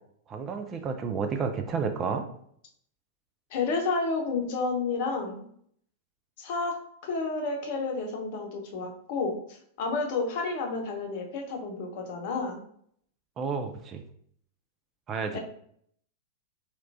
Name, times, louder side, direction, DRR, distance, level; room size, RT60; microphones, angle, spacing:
voice 1, 0.3-2.3 13.4-14.0 15.1-15.4, right 5 dB, 25° right, 6 dB, 0.4 m, -31 dB
voice 2, 3.5-5.4 6.4-6.7 7.0-12.6 15.3-15.4, left 3 dB, 50° left, 2 dB, 0.8 m, -30 dB
4.4 x 2.9 x 2.5 m, 0.65 s
figure-of-eight pair, 95°, 0 cm